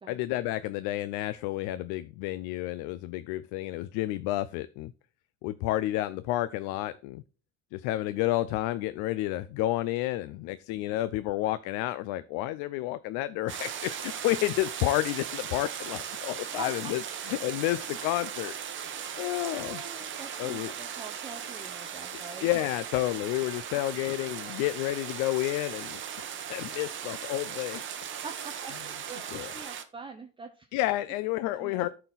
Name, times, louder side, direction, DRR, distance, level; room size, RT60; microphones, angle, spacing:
voice 1, 0.1-4.9 5.4-7.2 7.7-17.0 17.3-18.6 19.2-19.8 20.4-20.7 22.4-27.8 29.3-29.5 30.7-31.9, left 16 dB, 85° left, 14 dB, 0.5 m, -30 dB
sound 1, 13.5-29.8, right 8 dB, 40° right, 1.2 m, -38 dB
voice 2, 16.6-17.2 19.0-22.5 24.5-24.9 28.2-30.7 31.5-31.9, right 4 dB, 15° right, 5 dB, 0.7 m, -45 dB
13.0 x 4.4 x 4.0 m, 0.36 s
cardioid pair, 135°, 30 cm